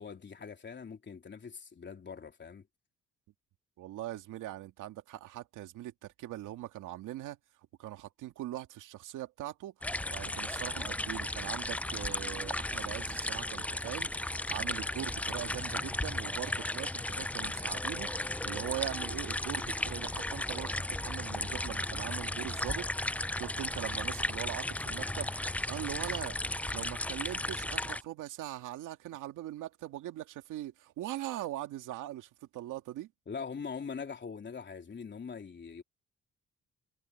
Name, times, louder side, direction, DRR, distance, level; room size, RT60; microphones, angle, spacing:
voice 1, 0.0-2.7 33.3-35.8, left 5 dB, 35° left, 3.6 m, -42 dB
voice 2, 3.8-7.4 7.8-9.7 10.1-14.1 14.5-26.4 26.7-33.1, right 14 dB, 90° right, 2.2 m, -41 dB
sound 1, 9.8-28.0, left 1 dB, 5° left, 0.3 m, -35 dB
cardioid pair, 90°, 30 cm